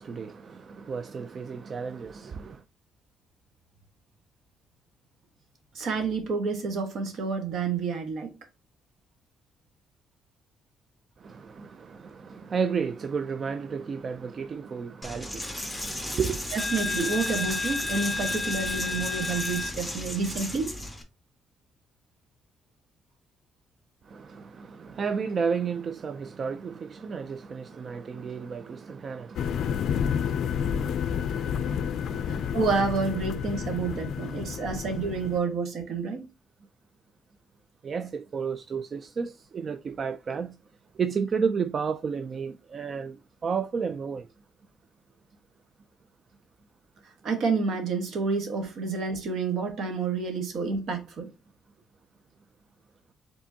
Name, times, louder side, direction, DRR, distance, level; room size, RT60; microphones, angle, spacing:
voice 1, 0.0-2.6 11.2-16.5 24.0-32.6 34.3-34.8 37.8-40.5 40.9-44.3, right 6 dB, 45° right, 0.3 m, -33 dB
voice 2, 5.7-8.3 16.5-20.7 32.3-36.2 47.2-51.3, right 4 dB, 70° right, 1.3 m, -29 dB
Coin (dropping), 15.0-21.0, left 2 dB, 5° right, 1.2 m, -32 dB
sound 1, 29.4-35.4, left 7 dB, 70° left, 0.3 m, -30 dB
4.9 x 3.6 x 2.7 m
cardioid pair, 90°, 0 cm